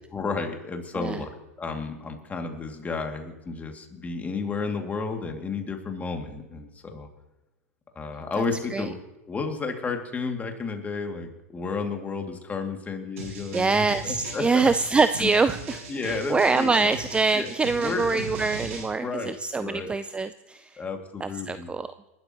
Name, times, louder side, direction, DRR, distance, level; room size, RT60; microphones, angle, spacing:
voice 1, 0.1-1.3 1.6-7.1 8.0-9.0 9.3-14.7 15.2-15.3 15.9-16.9 17.3-17.5 17.8-18.3 19.0-19.9 20.8-21.7, left 4 dB, 20° left, 3 dB, 2.3 m, -32 dB
sound 1, 13.2-18.9, right 3 dB, 70° right, 7.0 m, -39 dB
voice 2, 13.5-20.8 21.2-21.9, right 4 dB, 15° right, 12 dB, 0.4 m, -24 dB
29.0 x 12.5 x 3.0 m, 1.0 s
hypercardioid pair, 95°, 8 cm